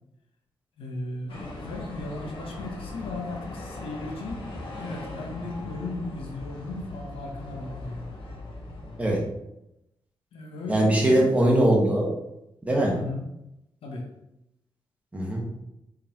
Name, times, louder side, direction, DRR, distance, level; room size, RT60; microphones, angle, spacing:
voice 1, 0.8-4.4 4.8-8.1 10.3-11.3 12.9-13.3 13.8-14.1, left 2 dB, 90° left, 1 dB, 1.0 m, -36 dB
sound 1, 1.3-9.2, left 2 dB, 70° left, 1.3 m, -39 dB
voice 2, 10.7-12.1 12.6-12.9 15.1-15.4, right 1 dB, 15° right, -3 dB, 1.4 m, -21 dB
4.7 x 3.7 x 3.0 m, 0.86 s
cardioid pair, 105°, 9 cm